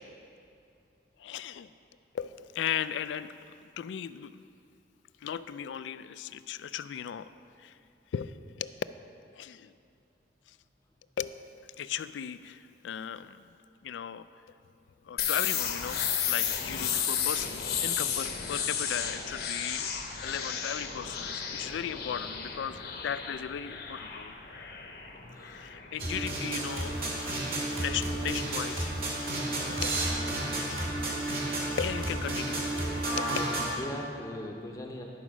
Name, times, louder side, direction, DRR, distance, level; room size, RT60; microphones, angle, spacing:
voice 1, 1.2-1.7 2.1-4.4 5.2-7.3 7.6-7.8 8.1-8.7 9.3-9.7 10.5-10.6 11.2-11.4 11.8-13.4 13.8-14.3 15.0-19.9 20.2-24.3 25.4-28.9 29.4-30.0 30.7-31.0 31.8-32.6 33.2-33.3, left 8 dB, 85° left, 14 dB, 0.3 m, -37 dB
sound 1, 15.2-26.8, left 7 dB, 60° left, 0.8 m, -33 dB
voice 2, 25.1-25.7 25.9-26.1 33.3-35.0, equal, 20° left, 0 dB, 0.7 m, -40 dB
sound 2, 26.0-33.8, right 1 dB, 55° right, 1.8 m, -32 dB
11.0 x 5.0 x 6.1 m, 2.5 s
head